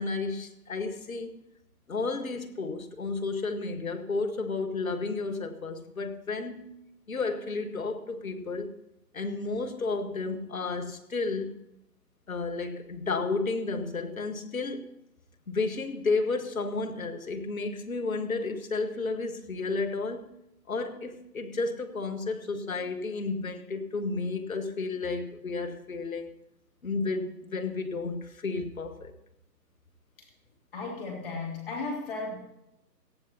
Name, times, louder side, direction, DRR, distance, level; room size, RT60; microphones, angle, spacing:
voice 1, 0.0-1.3 1.9-6.8 7.1-8.7 9.1-11.6 12.3-14.9 15.5-20.3 20.7-26.3 26.8-29.1, left 3 dB, 55° left, 1.6 m, -32 dB
voice 2, 30.7-32.4, left 3 dB, 35° left, 2.7 m, -35 dB
18.0 x 14.5 x 2.8 m
figure-of-eight pair, 145°, 50 cm